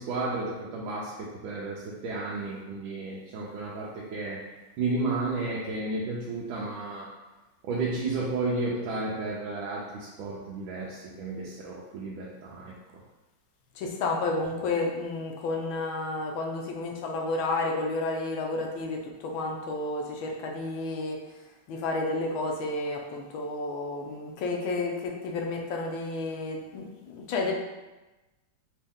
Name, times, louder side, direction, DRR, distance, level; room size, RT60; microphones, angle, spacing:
voice 1, 0.0-4.5 4.8-7.2 7.6-12.7, right 3 dB, 85° right, -5 dB, 1.4 m, -32 dB
voice 2, 13.8-21.2 21.7-27.5, left 2 dB, 85° left, 1 dB, 1.5 m, -31 dB
4.4 x 3.0 x 3.5 m, 1.1 s
omnidirectional pair, 2.1 m